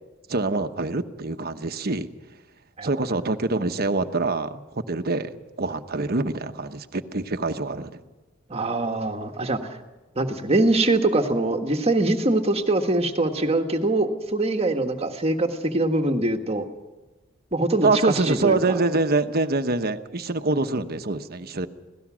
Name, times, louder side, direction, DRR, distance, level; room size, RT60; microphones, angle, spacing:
voice 1, 0.3-2.1 2.8-5.3 5.6-8.0 17.8-21.7, right 3 dB, 50° right, 8 dB, 1.1 m, -25 dB
voice 2, 8.5-9.6 10.2-16.7 17.5-18.8, right 2 dB, 30° right, 5 dB, 1.6 m, -23 dB
25.0 x 17.5 x 6.3 m, 1.2 s
head